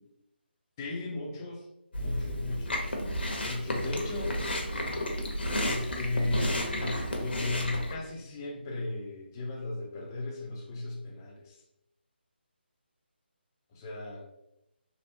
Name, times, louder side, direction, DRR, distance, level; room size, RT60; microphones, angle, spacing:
voice 1, 0.8-1.7 2.0-2.8 3.4-4.5 5.6-11.6 13.7-14.3, left 2 dB, 20° left, -1 dB, 0.4 m, -35 dB
Chewing mastication, 1.9-7.9, left 1 dB, 65° left, 0.7 m, -32 dB
3.3 x 2.1 x 2.9 m, 0.85 s
figure-of-eight pair, 150°, 6 cm